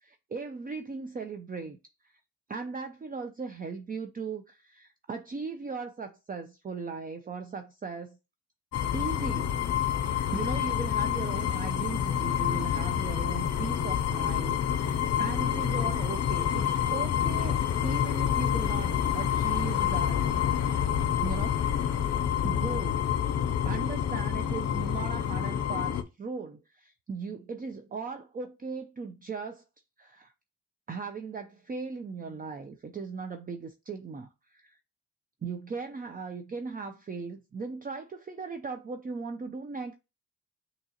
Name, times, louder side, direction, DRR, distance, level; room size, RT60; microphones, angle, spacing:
voice 1, 0.0-1.8 2.0-2.1 2.5-8.2 8.9-9.6 10.0-20.9 21.2-21.6 22.4-23.1 23.7-29.6 30.0-30.3 30.9-34.8 35.4-40.0, right 4 dB, 25° right, 0.5 m, -38 dB
sound 1, 8.7-26.0, left 9 dB, 50° left, 0.6 m, -28 dB
6.4 x 3.0 x 2.8 m
cardioid pair, 70°, 32 cm